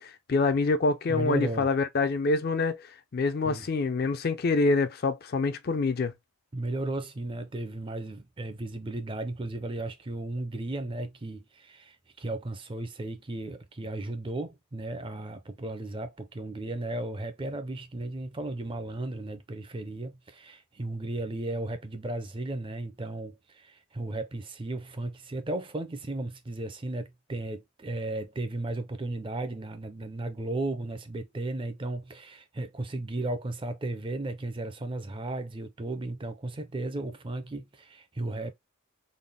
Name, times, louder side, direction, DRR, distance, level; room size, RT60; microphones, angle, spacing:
voice 1, 0.0-2.9 3.1-6.1, left 3 dB, 45° left, 0.4 m, -26 dB
voice 2, 1.1-1.7 3.4-3.7 6.5-38.5, right 2 dB, 25° right, 0.4 m, -35 dB
3.9 x 2.0 x 3.3 m
head